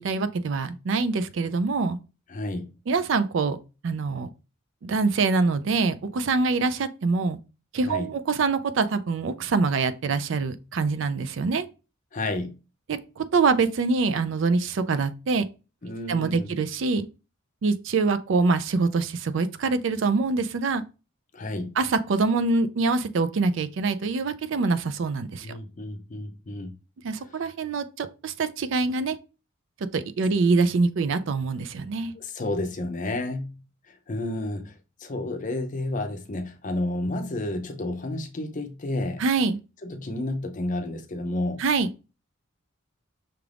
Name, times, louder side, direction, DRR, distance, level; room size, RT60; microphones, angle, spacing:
voice 1, 0.0-2.0 2.9-3.6 3.8-4.3 4.8-7.4 7.7-11.7 12.9-15.4 16.1-17.1 17.6-20.8 21.8-25.5 27.0-29.2 29.9-32.1 39.2-39.6 41.6-41.9, right 4 dB, 65° right, 0.4 m, -24 dB
voice 2, 2.3-2.7 7.8-8.1 12.1-12.6 15.8-16.5 21.3-21.8 25.4-26.7 27.2-27.4 32.1-33.6 33.9-39.2 39.8-41.6, left 2 dB, 40° left, 0.6 m, -31 dB
5.8 x 2.5 x 3.3 m
head